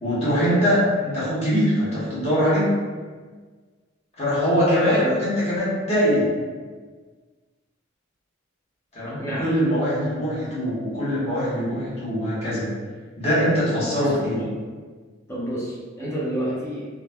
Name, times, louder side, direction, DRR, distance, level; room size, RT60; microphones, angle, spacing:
voice 1, 0.0-2.7 4.2-6.2 8.9-12.7 13.2-14.4, equal, 30° left, -10 dB, 1.1 m, -22 dB
voice 2, 4.8-5.2 9.0-9.5 13.9-14.5 15.3-16.8, equal, 15° left, -8 dB, 0.7 m, -30 dB
3.2 x 2.2 x 2.2 m, 1.5 s
head